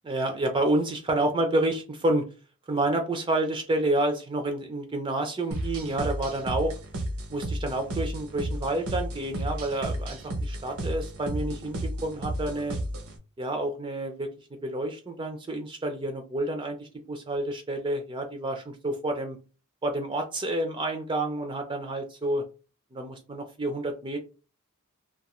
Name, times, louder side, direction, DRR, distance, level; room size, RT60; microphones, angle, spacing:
voice 1, 0.0-2.2 2.7-6.7 7.3-12.8 13.4-14.3 14.6-19.4 19.8-22.4 22.9-24.2, right 1 dB, 20° right, 5 dB, 0.3 m, -29 dB
sound 1, 5.5-13.2, right 1 dB, 75° right, 0.6 m, -33 dB
2.3 x 2.2 x 2.9 m, 0.33 s
head